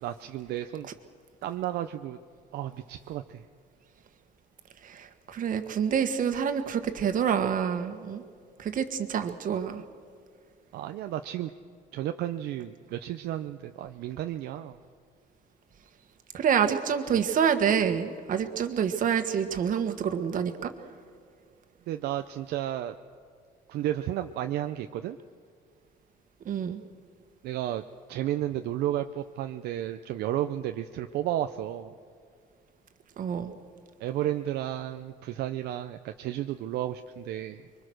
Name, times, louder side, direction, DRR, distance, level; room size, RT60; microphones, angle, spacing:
voice 1, 0.0-0.9 1.4-2.2 2.5-3.5 10.7-11.5 11.9-14.8 21.9-22.9 23.7-25.2 27.4-27.8 28.1-31.9 34.0-37.7, right 12 dB, 75° right, 7 dB, 0.7 m, -32 dB
voice 2, 4.8-8.2 8.6-9.8 16.3-20.7 26.4-26.8 33.2-33.5, right 7 dB, 55° right, 8 dB, 1.7 m, -27 dB
25.5 x 23.0 x 6.4 m, 2.1 s
cardioid pair, 110°, 17 cm